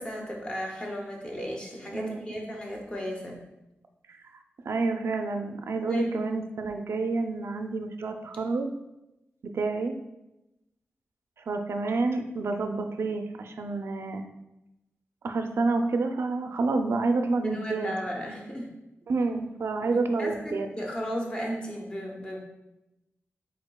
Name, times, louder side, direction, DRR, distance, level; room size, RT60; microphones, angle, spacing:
voice 1, 0.0-3.4 5.9-6.1 17.4-18.7 19.8-22.4, equal, 20° left, 0 dB, 0.8 m, -34 dB
voice 2, 1.9-2.5 4.1-4.2 4.6-8.7 9.5-10.0 11.4-14.3 15.2-17.9 19.1-20.7, right 3 dB, 65° right, 6 dB, 0.4 m, -29 dB
5.0 x 4.0 x 2.2 m, 0.93 s
wide cardioid pair, 160°, 5 cm